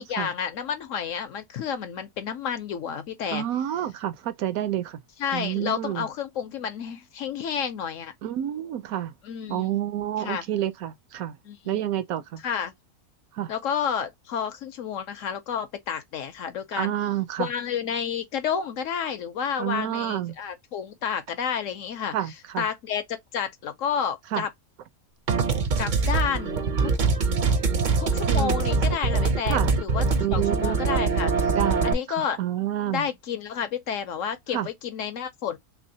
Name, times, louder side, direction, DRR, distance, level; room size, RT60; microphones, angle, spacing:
voice 1, 0.0-3.4 5.2-8.1 9.2-9.7 10.2-10.4 11.5-11.8 12.4-12.7 13.5-16.9 17.4-22.1 22.6-24.5 25.8-26.9 27.5-27.6 28.0-31.6 31.8-32.4 32.9-35.6, left 7 dB, 65° left, 0.9 m, -30 dB
voice 2, 3.3-5.0 5.3-6.1 8.2-9.1 9.5-11.4 11.7-12.4 13.3-13.5 16.8-17.5 19.6-20.3 22.1-22.7 24.3-24.4 28.3-28.6 29.5-29.7 30.2-30.8 31.5-33.1 34.5-34.7, right 11 dB, 75° right, 1.0 m, -29 dB
sound 1, 25.3-31.9, right 4 dB, 50° right, 0.6 m, -23 dB
3.4 x 3.1 x 2.7 m
omnidirectional pair, 1.6 m